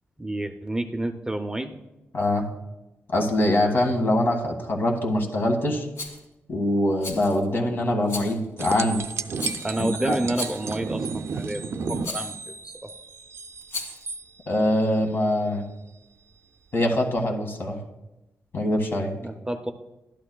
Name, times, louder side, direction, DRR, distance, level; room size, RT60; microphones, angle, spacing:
voice 1, 0.2-1.8 9.6-12.9 19.2-19.7, right 1 dB, 15° right, 6 dB, 0.5 m, -30 dB
voice 2, 2.1-2.4 3.1-5.9 6.5-9.0 9.8-10.2 14.5-15.6 16.7-17.8 18.5-19.1, left 1 dB, 50° left, 2 dB, 1.6 m, -23 dB
Rattle, 6.0-6.2 7.0-7.5 8.1-8.5 9.4-9.8 10.3-10.8 12.0-12.4 13.6-14.1, left 3 dB, 70° left, 1.8 m, -36 dB
sound 1, 8.6-14.2 17.2-17.3, right 4 dB, 65° right, 0.5 m, -32 dB
12.0 x 11.0 x 2.3 m, 0.96 s
wide cardioid pair, 110°, 5 cm